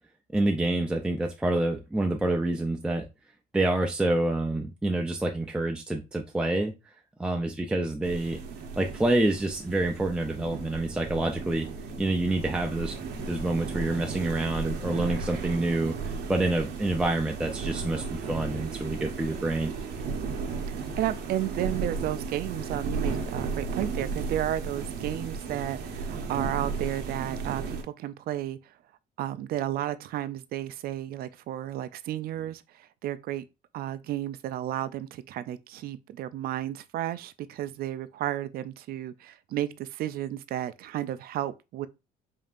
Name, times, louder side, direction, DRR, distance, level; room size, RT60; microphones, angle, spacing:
voice 1, 0.3-3.0 3.5-6.7 7.2-8.4 8.8-11.7 12.0-19.7, right 2 dB, 5° right, 0.5 m, -27 dB
sound 1, 8.0-27.8, right 4 dB, 80° right, 0.9 m, -35 dB
voice 2, 20.7-28.7 29.2-33.4 33.7-41.9, right 12 dB, 65° right, 0.4 m, -33 dB
5.2 x 2.7 x 2.4 m
cardioid pair, 110°, 17 cm